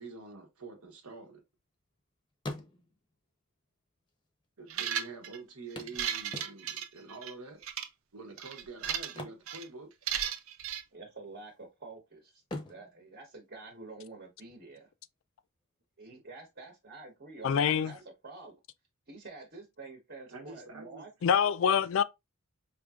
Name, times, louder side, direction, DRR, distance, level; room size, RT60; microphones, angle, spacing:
voice 1, 0.0-1.4 4.6-7.6 8.1-9.9 17.6-17.9 20.3-21.1, right 3 dB, 85° right, 1.2 m, -47 dB
sound 1, 0.7-2.0 2.3-3.2 4.1-4.2 4.4-4.5 5.8-6.9 9.0-10.3 10.6-10.8 11.3-11.9 12.4-14.2 16.2-16.3 16.7-16.8, left 1 dB, 20° left, 0.7 m, -45 dB
sound 2, 4.7-5.4 5.8-7.3 7.6-7.9 8.4-9.2 9.5-9.7 10.1-10.8, right 9 dB, 65° right, 0.5 m, -35 dB
voice 2, 10.9-12.4 12.7-14.9 16.0-18.6 19.1-21.1, right 3 dB, 45° right, 1.1 m, -48 dB
voice 3, 17.4-17.9 21.2-22.0, left 7 dB, 60° left, 0.3 m, -25 dB
5.0 x 2.7 x 2.4 m
head